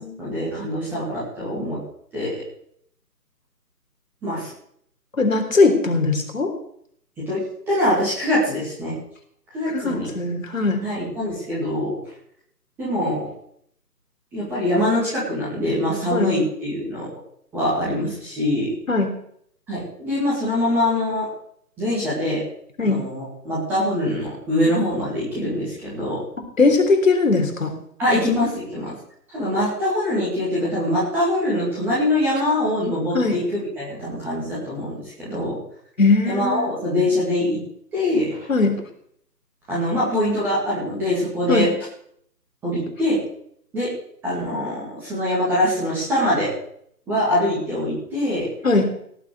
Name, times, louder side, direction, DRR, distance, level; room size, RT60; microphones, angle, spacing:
voice 1, 0.2-1.8 2.1-2.4 4.2-4.5 7.3-7.4 7.7-8.9 9.5-10.1 10.8-12.0 12.8-13.3 14.3-17.1 17.5-18.7 19.7-21.3 21.8-22.4 22.8-26.2 28.0-28.9 29.3-35.6 36.3-37.6 37.9-38.5 39.7-41.7 42.6-43.2 43.7-43.9 44.2-46.5 47.1-48.5, left 1 dB, 5° right, -8 dB, 2.3 m, -23 dB
voice 2, 5.2-6.5 9.7-10.8 16.1-16.3 18.9-19.1 22.8-23.0 26.6-27.7 33.1-33.3 36.0-36.7 38.5-38.7 41.5-41.7 48.6-48.9, left 3 dB, 50° left, 4 dB, 3.6 m, -19 dB
18.0 x 6.1 x 9.3 m, 0.67 s
figure-of-eight pair, 155°, 50 cm